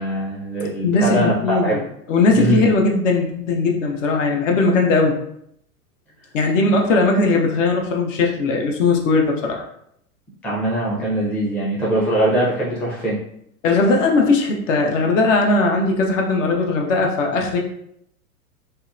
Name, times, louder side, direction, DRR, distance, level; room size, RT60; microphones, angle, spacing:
voice 1, 0.0-1.8 2.3-2.7 10.4-13.2, right 1 dB, 5° left, -7 dB, 0.4 m, -21 dB
voice 2, 0.8-1.8 2.1-5.2 6.3-9.6 13.6-17.6, left 3 dB, 55° left, 2 dB, 0.6 m, -18 dB
2.7 x 2.1 x 2.4 m, 0.72 s
hypercardioid pair, 100°, 44 cm